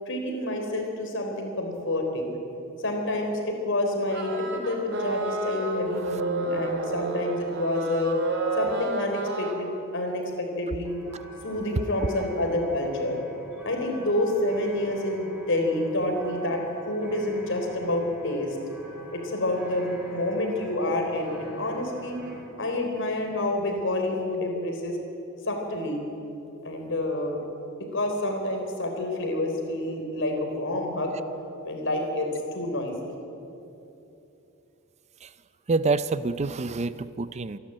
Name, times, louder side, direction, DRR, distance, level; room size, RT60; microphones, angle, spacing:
voice 1, 0.1-2.3 2.8-8.1 8.6-11.0 11.4-13.2 13.6-16.6 16.9-18.6 19.1-22.2 22.6-25.0 25.5-26.0 26.6-27.4 27.9-31.1 31.6-33.0, left 1 dB, 60° left, 3 dB, 4.0 m, -28 dB
sound 1, 4.1-9.6, right 2 dB, 60° right, 2.7 m, -30 dB
sound 2, 10.8-22.4, equal, 5° right, 4.6 m, -46 dB
voice 2, 35.7-37.6, right 3 dB, 30° right, 15 dB, 0.5 m, -27 dB
27.0 x 12.0 x 9.0 m, 2.9 s
head